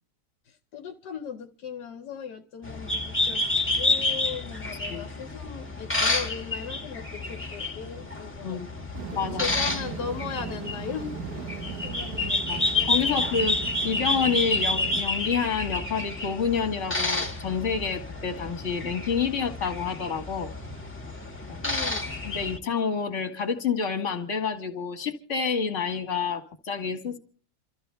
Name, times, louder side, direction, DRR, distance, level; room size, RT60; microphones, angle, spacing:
voice 1, 0.5-8.6 9.1-13.2 21.6-22.1, left 7 dB, 75° left, 1.5 m, -38 dB
sound 1, 2.6-22.6, left 2 dB, 5° left, 1.8 m, -29 dB
sound 2, 8.9-15.0, right 9 dB, 70° right, 1.5 m, -38 dB
voice 2, 9.1-9.5 12.2-12.6 12.9-13.6 13.8-20.5 21.5-21.6 22.2-27.2, left 6 dB, 45° left, 2.2 m, -28 dB
27.0 x 14.0 x 3.4 m
omnidirectional pair, 1.8 m